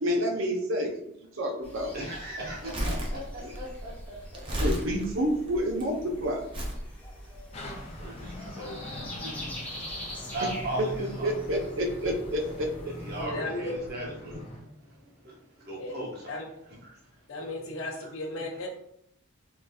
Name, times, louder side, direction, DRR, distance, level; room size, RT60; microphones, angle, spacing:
voice 1, 0.0-0.9 1.3-1.9 3.4-3.5 4.6-6.5 11.0-13.1, equal, 70° right, 2 dB, 0.6 m, -29 dB
sound 1, 1.6-13.2, left 1 dB, 10° left, 0.7 m, -44 dB
voice 2, 1.9-4.6 8.0-9.5 10.2-11.3 12.9-16.4 16.8-16.9, right 1 dB, 45° right, -4 dB, 1.1 m, -38 dB
Crumpling crinkling, 2.5-5.8 6.5-6.8 7.6-7.7, equal, 25° right, 0.5 m, -32 dB
sound 2, 7.5-14.6, left 1 dB, 30° left, 0.4 m, -42 dB
voice 3, 13.2-13.8 15.8-16.0 16.3-16.5 17.3-18.7, left 2 dB, 80° left, 1 dB, 0.6 m, -35 dB
3.7 x 2.6 x 2.3 m, 0.75 s
head